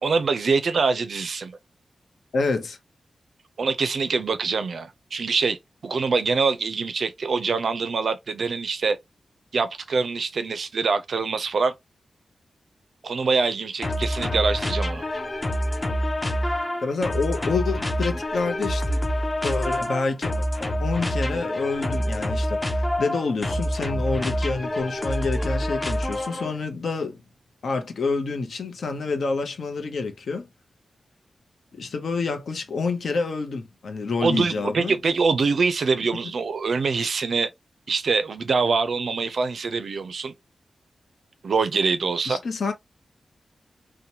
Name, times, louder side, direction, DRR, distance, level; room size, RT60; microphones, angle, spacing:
voice 1, 0.0-1.6 3.6-5.6 5.8-9.0 9.5-11.7 13.0-15.0 34.2-37.5 37.9-40.3 41.4-42.4, right 4 dB, 65° right, 0.4 m, -24 dB
voice 2, 2.3-2.8 16.8-19.0 19.4-27.2 27.6-30.5 31.7-35.0 42.3-42.7, left 4 dB, 70° left, 0.7 m, -28 dB
sound 1, 13.8-26.6, equal, 20° left, 0.5 m, -27 dB
2.9 x 2.1 x 2.7 m
wide cardioid pair, 140°, 0 cm